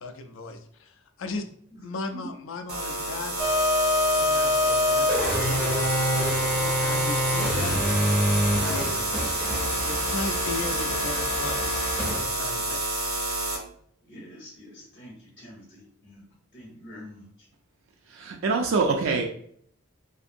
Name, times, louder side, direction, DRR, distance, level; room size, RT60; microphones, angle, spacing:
voice 1, 0.0-1.5 1.8-3.4 4.1-5.8 6.5-7.9 8.5-9.1 9.8-12.8, left 3 dB, 65° left, 6 dB, 0.4 m, -37 dB
sound 1, 2.7-13.6, right 2 dB, 85° right, 0.9 m, -29 dB
sound 2, 3.4-12.2, left 1 dB, 5° left, 0.5 m, -26 dB
voice 2, 14.0-16.2 16.5-17.3, left 1 dB, 45° left, -3 dB, 0.7 m, -46 dB
voice 3, 18.1-19.2, right 4 dB, 65° right, 2 dB, 0.3 m, -24 dB
2.6 x 2.5 x 2.5 m, 0.64 s
head